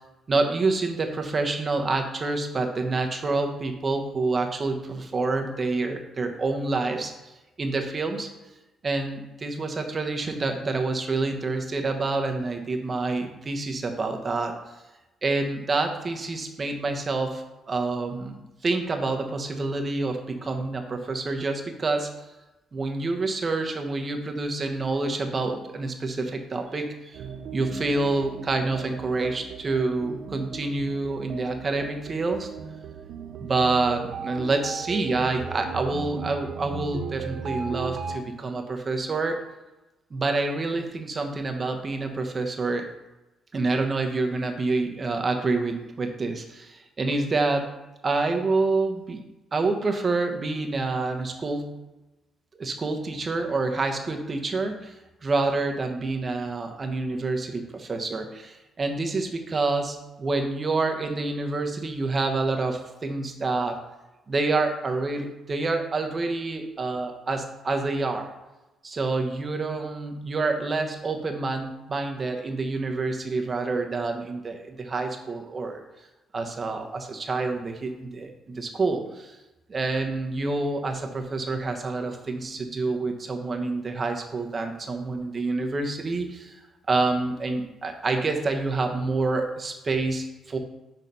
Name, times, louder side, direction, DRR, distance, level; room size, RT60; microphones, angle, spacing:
voice 1, 0.3-7.3 7.6-8.3 8.8-14.5 15.2-18.4 18.6-22.1 22.7-32.5 33.4-39.4 40.1-42.9 43.5-47.7 48.0-49.2 49.5-51.8 52.6-54.9 55.2-63.8 64.3-68.3 68.8-75.8 76.3-79.4 79.7-86.6 86.9-90.6, right 3 dB, 35° right, 4 dB, 1.0 m, -27 dB
sound 1, 27.1-38.2, right 6 dB, 65° right, 0.4 m, -37 dB
6.0 x 4.0 x 5.4 m, 1.0 s
cardioid pair, 90°, 0 cm